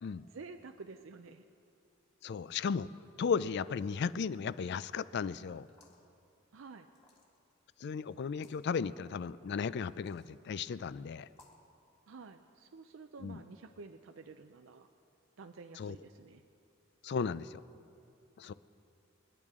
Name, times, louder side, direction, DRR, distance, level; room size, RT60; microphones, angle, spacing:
voice 1, 0.3-1.4 6.5-6.9 12.1-14.9 15.4-16.4, right 4 dB, 85° right, 7 dB, 0.5 m, -50 dB
voice 2, 2.2-2.9 3.2-5.7 7.8-11.3 13.2-13.4 15.8-16.0 17.0-17.6 18.4-18.5, left 6 dB, 60° left, 17 dB, 0.4 m, -35 dB
sound 1, 5.6-6.1 6.9-7.5 8.3-8.6 9.8-10.3 11.3-11.7, left 3 dB, 35° left, 2.2 m, -63 dB
27.0 x 10.5 x 3.7 m, 2.6 s
head